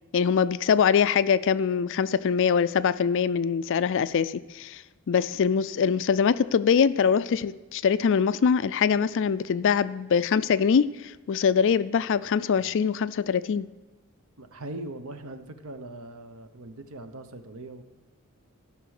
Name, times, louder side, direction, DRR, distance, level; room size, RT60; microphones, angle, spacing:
voice 1, 0.1-4.8 5.1-13.7, left 6 dB, 60° left, 15 dB, 0.4 m, -23 dB
voice 2, 14.4-17.8, right 2 dB, 70° right, 8 dB, 0.9 m, -40 dB
13.0 x 5.9 x 6.4 m, 1.2 s
head